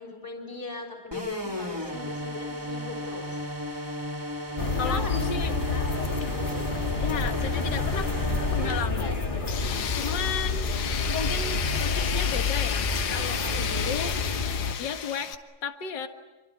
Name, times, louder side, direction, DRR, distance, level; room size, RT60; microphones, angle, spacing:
voice 1, 0.0-3.4 4.6-5.8 6.2-6.4 9.9-10.5 11.6-11.7, left 2 dB, 10° left, 0 dB, 3.8 m, -39 dB
sound 1, 1.1-8.8, equal, 10° right, 3.2 m, -34 dB
sound 2, 4.6-14.7, left 3 dB, 25° left, 1.7 m, -29 dB
voice 2, 4.8-5.5 7.0-8.1 8.5-9.1 9.7-10.7 11.1-14.2 14.8-15.3 15.6-16.1, left 7 dB, 55° left, 6 dB, 2.2 m, -34 dB
Tools, 9.5-15.4, left 8 dB, 70° left, 2.1 m, -32 dB
28.0 x 24.0 x 8.6 m, 1.1 s
omnidirectional pair, 2.4 m